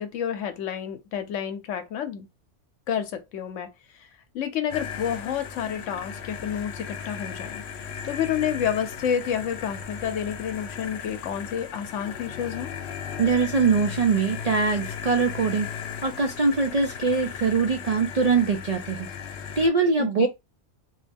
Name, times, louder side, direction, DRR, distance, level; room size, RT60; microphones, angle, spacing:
voice 1, 0.0-2.3 2.9-4.1 4.3-7.6 8.0-12.7 20.0-20.3, left 8 dB, 85° left, 1.0 m, -29 dB
sound 1, 4.7-19.7, left 7 dB, 65° left, 0.8 m, -36 dB
voice 2, 13.2-15.7 16.0-19.1 19.6-20.3, right 4 dB, 65° right, 0.3 m, -22 dB
3.1 x 2.6 x 3.4 m
omnidirectional pair, 1.3 m